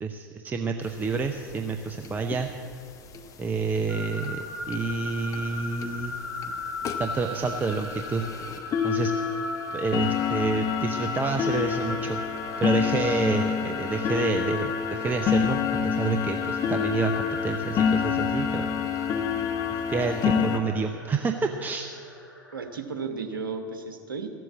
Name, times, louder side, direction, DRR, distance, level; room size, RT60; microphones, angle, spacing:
voice 1, 0.0-2.5 3.4-6.2 7.0-8.3 8.8-9.1 9.7-12.2 12.6-18.7 19.7-21.9, right 4 dB, 15° right, 5 dB, 0.6 m, -28 dB
sound 1, 0.9-1.0 1.2-1.3 1.5-1.7 2.0-2.4 3.1-3.2 3.8-3.9 4.2-4.3 4.7-4.8 5.3-5.4 5.8-6.0 6.4-6.5 6.8-20.6, left 7 dB, 30° left, 1.0 m, -28 dB
sound 2, 3.9-22.7, left 3 dB, 80° left, 3.1 m, -37 dB
voice 2, 22.5-24.3, right 4 dB, 75° right, 6 dB, 1.2 m, -34 dB
14.5 x 7.7 x 8.4 m, 2.5 s
figure-of-eight pair, 85°, 11 cm